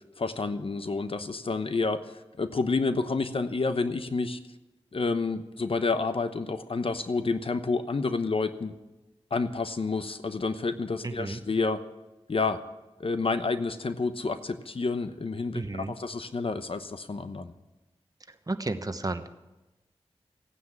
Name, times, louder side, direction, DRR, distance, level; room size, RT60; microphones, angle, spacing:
voice 1, 0.2-2.0 2.4-4.4 4.9-8.7 9.3-11.8 12.3-12.6 13.0-17.5, left 3 dB, 60° left, 10 dB, 0.9 m, -29 dB
voice 2, 11.0-11.4 15.5-15.9 18.3-19.3, right 2 dB, 35° right, 9 dB, 1.1 m, -33 dB
16.0 x 9.6 x 7.4 m, 1.0 s
wide cardioid pair, 60°, 11 cm